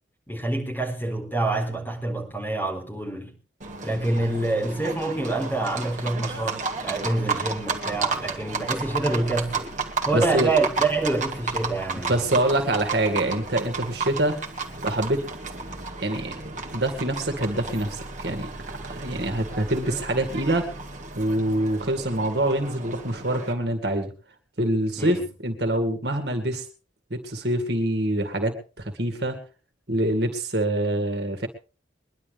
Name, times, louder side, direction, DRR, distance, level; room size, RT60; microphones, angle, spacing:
voice 1, 0.3-3.4 3.8-9.7 10.1-12.2 25.0-25.3, right 2 dB, 10° left, 4.3 m, -26 dB
Livestock farm animals working animals, 3.6-23.5, right 4 dB, 40° right, 2.0 m, -33 dB
voice 2, 10.1-10.5 12.1-14.4 14.8-15.2 16.0-16.4 16.7-18.5 18.8-20.7 21.1-24.1 24.6-26.6 27.1-29.4 29.9-31.5, right 1 dB, 60° right, 2.2 m, -25 dB
23.0 x 11.0 x 3.5 m
head